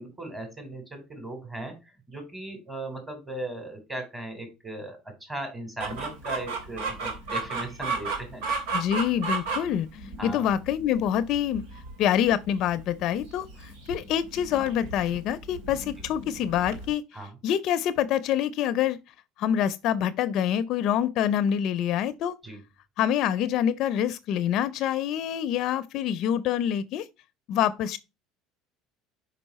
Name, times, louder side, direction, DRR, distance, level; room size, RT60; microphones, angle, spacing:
voice 1, 0.0-1.7 2.1-8.4 10.2-10.5 17.1-17.3 22.4-22.6, right 1 dB, 15° right, 3.3 m, -37 dB
Chicken rooster, 5.8-16.9, right 4 dB, 85° right, 1.9 m, -34 dB
voice 2, 8.7-11.6 12.0-17.0 17.4-19.0 19.4-22.3 23.0-27.1 27.5-28.0, left 10 dB, 55° left, 0.5 m, -26 dB
5.4 x 5.2 x 4.1 m
cardioid pair, 125°, 0 cm